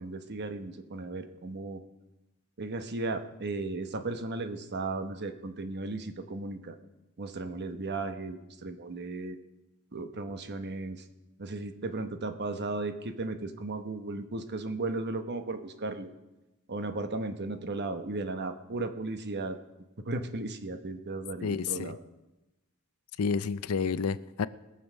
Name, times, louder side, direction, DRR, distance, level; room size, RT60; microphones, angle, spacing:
voice 1, 0.0-1.8 2.6-6.8 7.2-9.4 9.9-11.0 11.4-16.1 16.7-19.6 20.0-22.0, right 2 dB, 50° right, 1.0 m, -35 dB
voice 2, 21.4-21.9 23.2-24.5, left 5 dB, 75° left, 0.5 m, -30 dB
20.5 x 7.1 x 6.2 m
head